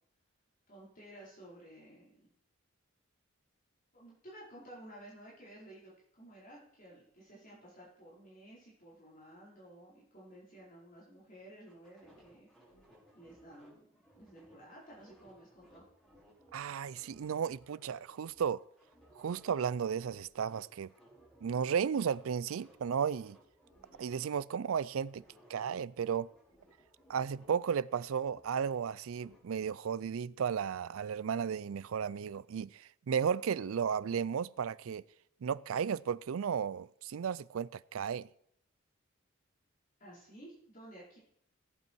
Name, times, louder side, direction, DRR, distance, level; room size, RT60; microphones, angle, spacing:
voice 1, 0.7-2.3 3.9-12.5 13.1-13.9 14.1-15.8 40.0-41.2, right 1 dB, 40° left, 4.3 m, -54 dB
sound 1, 11.7-16.5 16.8-21.7 22.0-24.3 24.6-27.6 27.9-29.4, equal, ahead, 4.9 m, -62 dB
voice 2, 16.5-18.6 19.2-20.9 21.4-23.4 24.0-25.2 25.5-26.3 27.1-35.0 35.4-38.3, right 7 dB, 90° right, 0.4 m, -34 dB
17.0 x 8.2 x 4.6 m
head